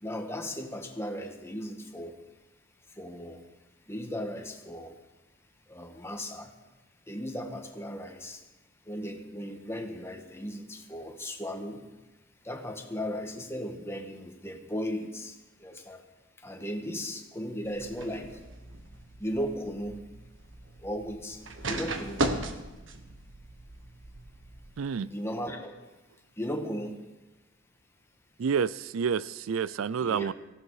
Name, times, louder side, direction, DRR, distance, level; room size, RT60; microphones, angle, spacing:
voice 1, 0.0-2.2 2.9-3.4 3.9-5.0 5.7-6.5 7.1-8.4 8.8-11.8 12.4-16.0 16.4-18.4 19.2-20.0 20.8-21.4 21.7-22.4 25.0-25.7 26.4-27.1 30.0-30.3, equal, 15° left, 1.6 m, -36 dB
sound 1, 17.6-24.8, right 2 dB, 70° right, 1.4 m, -37 dB
voice 2, 24.8-25.1 28.4-30.3, right 6 dB, 90° right, 0.4 m, -29 dB
18.0 x 15.0 x 4.9 m
head